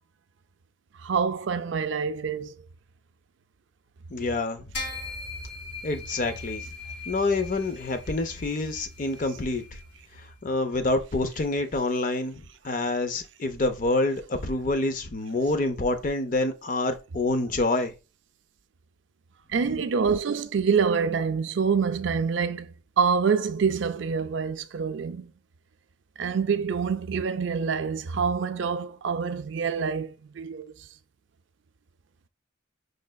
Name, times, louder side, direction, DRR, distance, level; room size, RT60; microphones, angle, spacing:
voice 1, 1.0-2.6 19.5-25.3 26.2-30.9, right 6 dB, 70° right, 0.4 m, -26 dB
voice 2, 4.1-4.7 5.8-6.6 7.1-9.6 10.4-17.9, left 2 dB, 40° left, 0.5 m, -27 dB
sound 1, 4.7-10.4, left 3 dB, 60° left, 2.1 m, -39 dB
6.3 x 3.2 x 2.2 m
head